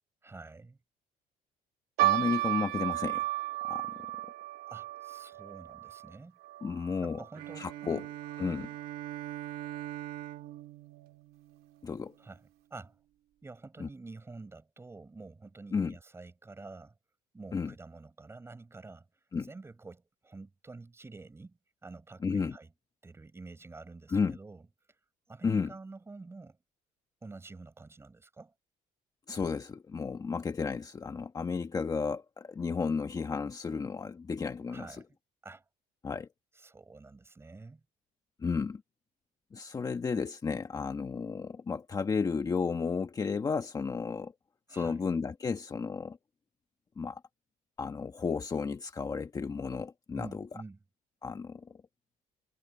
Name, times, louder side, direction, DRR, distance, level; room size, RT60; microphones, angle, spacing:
voice 1, 0.2-0.8 4.7-6.4 7.0-8.0 12.2-12.4 12.7-13.0 13.4-16.9 17.3-19.1 19.4-22.7 23.0-24.6 25.3-26.6 27.2-28.5 34.7-35.1 35.4-35.6 36.5-37.8 44.7-45.1 50.1-50.8, right 3 dB, 15° right, 4.8 m, -48 dB
voice 2, 2.0-3.2 3.7-3.9 6.6-7.2 7.6-8.0 8.4-8.7 11.8-12.1 13.8-13.9 15.7-16.0 17.5-17.7 19.3-19.5 22.2-22.6 24.1-24.4 25.4-25.7 29.3-35.0 36.0-36.3 38.4-38.8 39.5-44.3 44.7-46.2 47.0-47.2 47.8-50.4 51.2-51.7, left 5 dB, 25° left, 1.3 m, -33 dB
sound 1, 2.0-8.5 8.7-8.8 9.6-9.9 10.5-10.6 10.9-11.1, right 17 dB, 85° right, 2.3 m, -34 dB
Bowed string instrument, 7.3-12.1, right 14 dB, 65° right, 1.5 m, -42 dB
cardioid pair, 135°, 16 cm